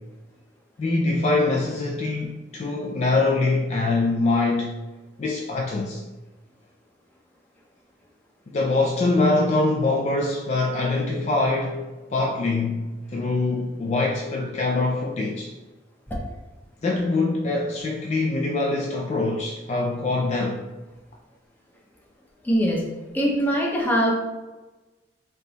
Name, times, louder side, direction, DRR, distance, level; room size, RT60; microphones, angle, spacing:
voice 1, 0.8-4.8 5.2-6.0 8.5-15.5 16.8-20.6, left 2 dB, 40° left, 0 dB, 0.3 m, -24 dB
voice 2, 22.4-22.8 23.1-24.1, equal, 10° left, -3 dB, 0.7 m, -22 dB
3.5 x 2.8 x 3.9 m, 1.1 s
head